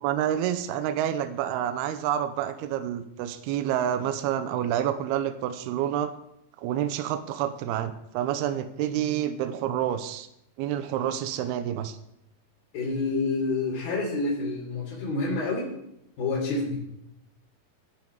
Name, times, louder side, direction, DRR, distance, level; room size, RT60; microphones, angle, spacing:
voice 1, 0.0-6.1 6.6-10.3 10.6-12.0, right 10 dB, 80° right, 10 dB, 2.4 m, -28 dB
voice 2, 12.7-15.7 16.2-16.8, left 3 dB, 55° left, -6 dB, 5.2 m, -28 dB
18.0 x 11.0 x 4.7 m, 0.82 s
omnidirectional pair, 5.3 m